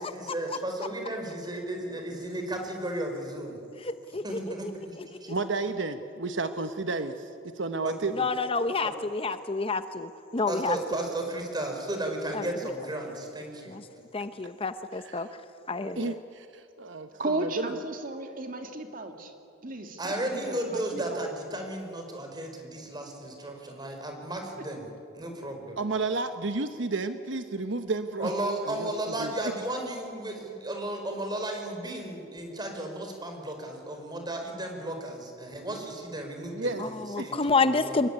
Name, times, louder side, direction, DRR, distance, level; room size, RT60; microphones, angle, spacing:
voice 1, 0.0-3.6 4.2-4.7 5.2-5.3 7.8-7.9 10.5-13.7 20.0-25.8 28.2-38.0, right 1 dB, 20° right, 3 dB, 4.8 m, -34 dB
voice 2, 5.3-7.1 7.5-8.2 14.9-15.2 15.9-16.5 16.8-17.8 25.8-28.3 28.8-28.9 29.2-29.3 36.5-36.8 37.2-37.3, right 3 dB, 65° right, 9 dB, 1.1 m, -31 dB
voice 3, 8.2-10.8 12.3-12.4 13.7-13.8 14.1-15.3 15.7-16.2 36.8-36.9 37.1-38.1, left 4 dB, 30° left, 11 dB, 0.8 m, -28 dB
voice 4, 17.1-19.3 19.6-21.3, right 2 dB, 45° right, 5 dB, 2.5 m, -35 dB
26.0 x 21.5 x 10.0 m, 2.6 s
head